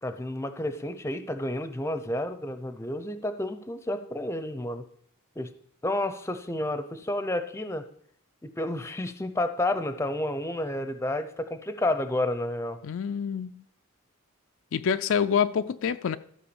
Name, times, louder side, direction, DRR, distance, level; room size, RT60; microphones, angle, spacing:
voice 1, 0.0-4.8 5.4-5.5 5.8-7.9 8.4-12.8, left 1 dB, 15° left, 0.6 m, -30 dB
voice 2, 12.8-13.6 14.7-16.2, left 7 dB, 65° left, 0.4 m, -26 dB
13.5 x 4.6 x 7.0 m
head